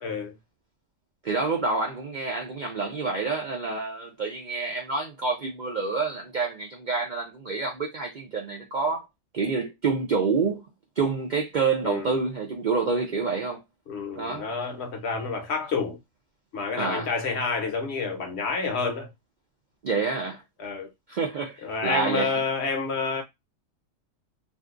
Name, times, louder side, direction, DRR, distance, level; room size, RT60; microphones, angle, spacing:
voice 1, 0.0-0.3 11.8-12.2 13.9-16.0 16.5-19.1 20.6-20.9 21.6-23.2, left 4 dB, 60° left, 1.0 m, -29 dB
voice 2, 1.2-9.0 9.3-10.7 11.0-13.6 14.2-14.5 16.8-17.1 19.8-20.4 21.1-22.4, right 4 dB, 55° right, 0.5 m, -28 dB
2.5 x 2.3 x 3.6 m
omnidirectional pair, 1.3 m